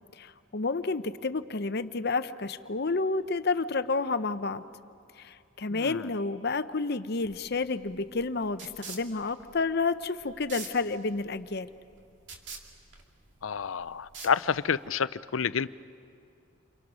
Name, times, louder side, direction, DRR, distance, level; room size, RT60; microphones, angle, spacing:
voice 1, 0.2-4.6 5.2-11.7, left 3 dB, 55° left, 13 dB, 0.8 m, -30 dB
voice 2, 5.7-6.1 13.4-15.7, left 6 dB, 85° left, 17 dB, 0.6 m, -29 dB
sound 1, 7.2-14.9, right 4 dB, 60° right, 2.5 m, -47 dB
29.0 x 28.5 x 6.2 m, 2.6 s
head